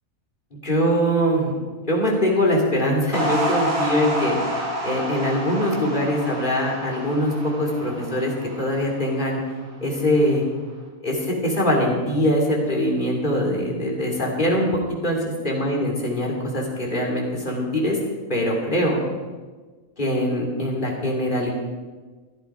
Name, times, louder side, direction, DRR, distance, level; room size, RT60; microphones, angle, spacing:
voice 1, 0.5-1.5 1.9-4.4 4.8-9.4 9.8-10.4 11.0-18.0 18.3-19.0 20.0-21.5, equal, 35° left, -2 dB, 3.1 m, -22 dB
sound 1, 3.1-9.6, equal, 50° right, 4.3 m, -29 dB
14.5 x 12.0 x 5.0 m, 1.4 s
omnidirectional pair, 1.4 m